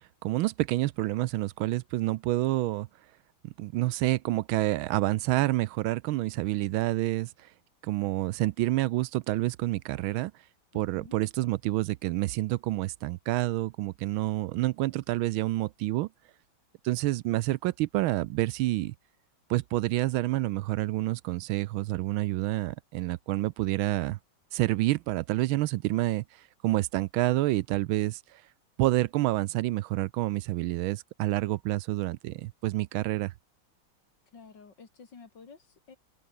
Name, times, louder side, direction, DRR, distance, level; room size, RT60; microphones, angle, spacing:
voice 1, 0.2-2.9 3.4-7.3 7.8-10.3 10.7-16.1 16.8-18.9 19.5-24.2 24.5-26.2 26.6-28.4 28.8-33.3, right 17 dB, 80° right, 1.4 m, -28 dB
voice 2, 10.7-11.2 34.3-36.0, left 5 dB, 60° left, 3.3 m, -51 dB
omnidirectional pair, 2.3 m